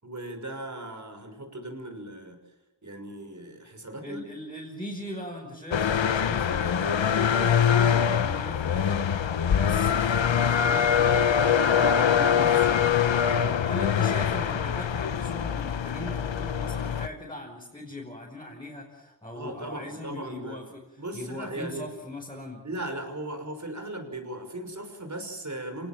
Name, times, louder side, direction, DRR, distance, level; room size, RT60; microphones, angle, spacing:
voice 1, 0.0-2.4 2.8-4.2 13.2-13.5 19.3-20.6 21.0-21.9 22.6-25.9, right 1 dB, 40° right, 6 dB, 5.9 m, -37 dB
voice 2, 4.0-9.0 9.5-12.7 13.4-20.8 21.1-22.6, left 1 dB, 10° left, -3 dB, 5.5 m, -39 dB
sound 1, 5.7-17.1, left 8 dB, 85° left, 1.1 m, -24 dB
29.0 x 18.5 x 7.6 m, 1.1 s
wide cardioid pair, 75°, 44 cm